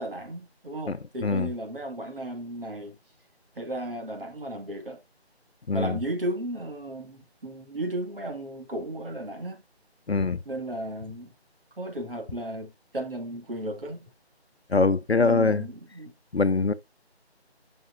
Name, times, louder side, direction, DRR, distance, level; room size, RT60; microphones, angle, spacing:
voice 1, 0.0-2.9 3.6-5.0 5.7-9.6 10.4-11.3 11.8-14.1 15.2-16.1, right 1 dB, 55° right, 2.7 m, -34 dB
voice 2, 5.7-6.0 10.1-10.4 14.7-15.6 16.3-16.7, left 3 dB, 70° left, 0.8 m, -23 dB
11.0 x 5.5 x 2.7 m
figure-of-eight pair, 165°, 33 cm